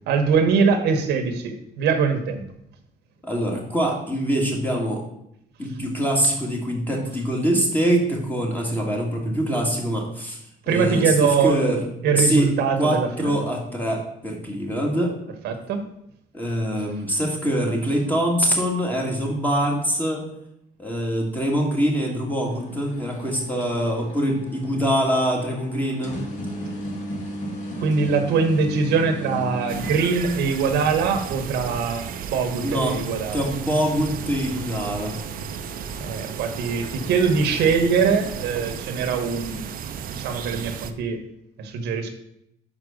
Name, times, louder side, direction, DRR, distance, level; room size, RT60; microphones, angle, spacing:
voice 1, 0.1-2.4 10.7-11.6 12.0-13.4 15.4-15.8 27.8-33.4 36.0-39.6 40.1-41.2 41.6-42.1, right 5 dB, 80° right, 7 dB, 1.1 m, -22 dB
voice 2, 3.2-5.0 5.6-10.4 10.7-11.9 12.2-12.5 12.8-15.2 16.3-20.2 20.8-26.2 32.6-33.0 33.3-35.2, equal, 10° left, 0 dB, 2.1 m, -24 dB
sound 1, 22.4-38.8, equal, 45° left, 1.8 m, -38 dB
sound 2, 29.7-40.9, right 8 dB, 55° right, 0.6 m, -34 dB
5.8 x 4.8 x 6.3 m, 0.77 s
cardioid pair, 110°, 17 cm